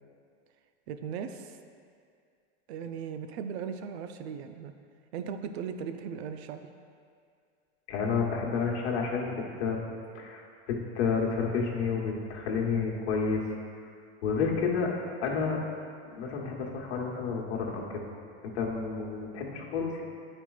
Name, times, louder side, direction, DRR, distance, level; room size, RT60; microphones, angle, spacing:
voice 1, 0.9-1.6 2.7-4.7 5.1-6.7, right 7 dB, 75° right, 8 dB, 0.5 m, -37 dB
voice 2, 7.9-9.8 10.1-13.4 14.2-14.9 15.2-15.6 16.0-18.0 18.4-20.0, left 5 dB, 85° left, -2 dB, 1.2 m, -30 dB
9.7 x 4.4 x 2.4 m, 2.2 s
supercardioid pair, 145°, 32 cm